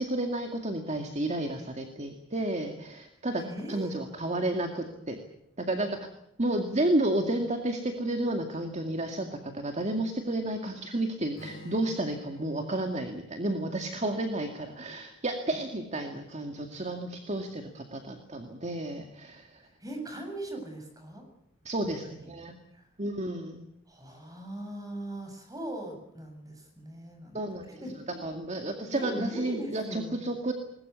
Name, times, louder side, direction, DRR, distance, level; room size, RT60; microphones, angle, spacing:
voice 1, 0.0-5.2 5.6-6.1 6.4-19.7 21.6-22.6 23.0-23.6 27.3-27.8 28.1-30.5, right 1 dB, 35° right, 5 dB, 2.2 m, -31 dB
voice 2, 3.4-3.9 15.5-15.6 19.6-21.3 21.8-21.9 22.2-22.3 22.7-22.9 23.9-27.4 27.8-27.9 28.9-30.2, right 1 dB, 20° right, 4 dB, 7.3 m, -39 dB
Strum, 11.4-15.5, equal, 80° left, 4.3 m, -52 dB
21.5 x 20.5 x 8.2 m, 0.78 s
head